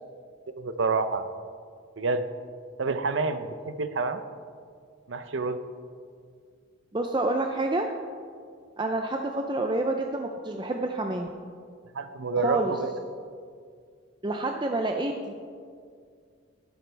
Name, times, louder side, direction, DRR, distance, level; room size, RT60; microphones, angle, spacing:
voice 1, 0.6-1.3 2.0-2.2 2.8-4.2 5.1-5.6 11.9-12.9, right 3 dB, 65° right, 10 dB, 0.6 m, -28 dB
voice 2, 6.9-7.9 8.8-11.3 12.4-12.7 14.2-15.3, right 2 dB, 25° right, 3 dB, 0.5 m, -28 dB
12.5 x 12.0 x 3.4 m, 2.1 s
head